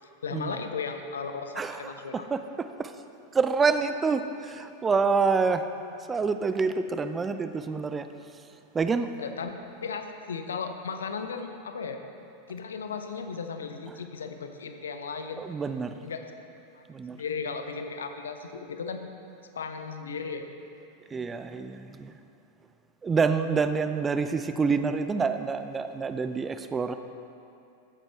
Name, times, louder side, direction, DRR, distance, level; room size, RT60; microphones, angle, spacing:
voice 1, 0.2-2.3 9.2-9.5 9.8-12.0 12.5-15.5 16.0-16.3 16.7-16.8 17.1-19.0 19.5-20.4, left 5 dB, 65° left, 7 dB, 0.8 m, -35 dB
voice 2, 1.6-2.9 3.3-5.6 6.1-8.1 8.7-9.1 15.4-15.9 16.9-17.2 21.1-22.1 23.0-26.9, right 5 dB, 15° right, 10 dB, 0.4 m, -27 dB
14.5 x 9.3 x 3.5 m, 2.6 s
figure-of-eight pair, 90°, 0 cm